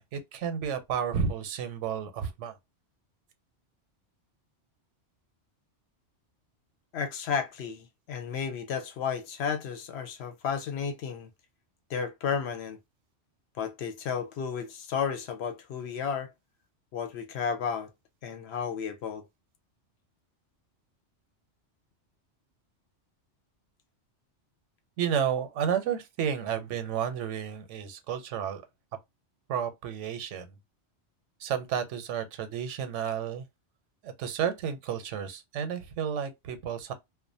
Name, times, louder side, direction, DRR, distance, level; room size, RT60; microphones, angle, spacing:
voice 1, 0.0-2.6 25.0-28.6 29.5-30.5 31.4-33.5 34.0-36.9, right 8 dB, 85° right, 0.9 m, -31 dB
voice 2, 6.9-11.3 11.9-12.8 13.6-16.3 16.9-17.9 18.2-19.2, left 6 dB, 65° left, 0.8 m, -33 dB
2.4 x 2.1 x 2.5 m
omnidirectional pair, 1.2 m